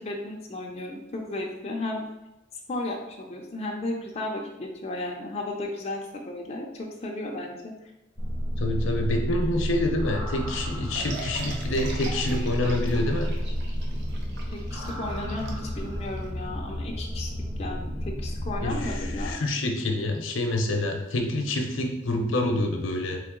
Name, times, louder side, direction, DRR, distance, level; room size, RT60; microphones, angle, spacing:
voice 1, 0.0-2.1 2.7-7.7 14.5-17.3 17.6-19.4, left 2 dB, 30° left, 0 dB, 0.5 m, -34 dB
sound 1, 8.2-19.3, equal, 15° right, 0.9 m, -31 dB
voice 2, 8.6-13.3 18.6-23.2, left 1 dB, 70° left, 3 dB, 0.7 m, -27 dB
sound 2, 11.0-16.3, right 2 dB, 60° right, 0.8 m, -40 dB
3.8 x 3.3 x 3.6 m, 0.97 s
head